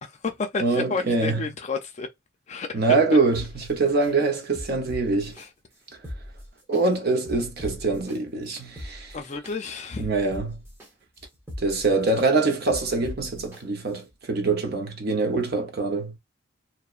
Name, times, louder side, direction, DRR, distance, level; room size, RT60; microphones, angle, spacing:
voice 1, 0.0-2.1 2.5-2.8 5.4-5.5 9.1-10.1, left 4 dB, 35° left, 0.5 m, -31 dB
voice 2, 0.6-1.4 2.7-5.3 6.7-9.2 10.0-10.6 11.6-16.2, right 3 dB, 55° right, 0.7 m, -24 dB
sound 1, 3.3-4.1 4.5-5.4 5.9-6.8 7.3-8.2 8.6-9.5 10.0-10.9 11.3-12.3 12.7-13.6 14.1-14.2, equal, 10° right, 0.9 m, -40 dB
2.7 x 2.1 x 2.4 m
head